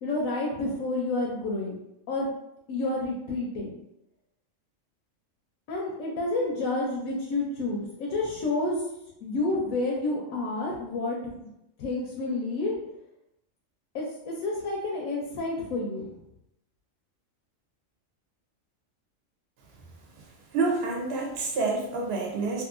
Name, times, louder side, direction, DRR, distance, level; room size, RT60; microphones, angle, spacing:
voice 1, 0.0-1.8 2.1-2.3 2.7-3.7 5.7-8.8 9.2-11.5 11.8-12.7 13.9-16.1, left 2 dB, 80° left, -2 dB, 1.0 m, -29 dB
voice 2, 20.5-22.6, right 3 dB, 60° right, -1 dB, 0.9 m, -28 dB
2.7 x 2.5 x 2.4 m, 0.84 s
omnidirectional pair, 1.4 m